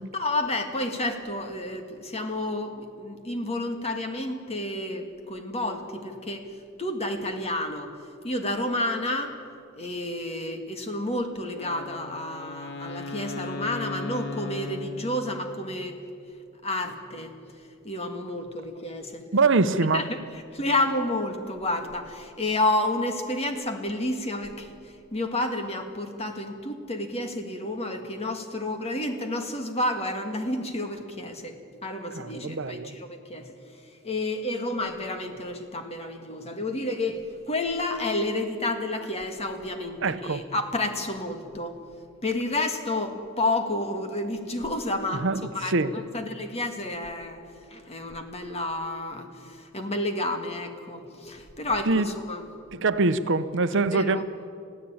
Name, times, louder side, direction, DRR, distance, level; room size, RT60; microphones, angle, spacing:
voice 1, 0.0-6.5 6.8-7.9 8.2-9.3 9.8-16.0 16.6-17.3 17.8-19.3 19.9-20.0 20.5-41.8 42.2-45.2 45.5-47.4 47.7-52.5 53.9-54.2, left 2 dB, 30° left, 5 dB, 1.8 m, -30 dB
Wind instrument woodwind instrument, 11.5-15.7, left 2 dB, 55° left, 2.1 m, -37 dB
voice 2, 19.3-20.1 32.1-33.0 40.0-40.5 45.1-45.9 51.9-52.1 52.7-54.3, right 3 dB, 65° right, 12 dB, 0.8 m, -24 dB
21.5 x 15.0 x 8.8 m, 2.4 s
head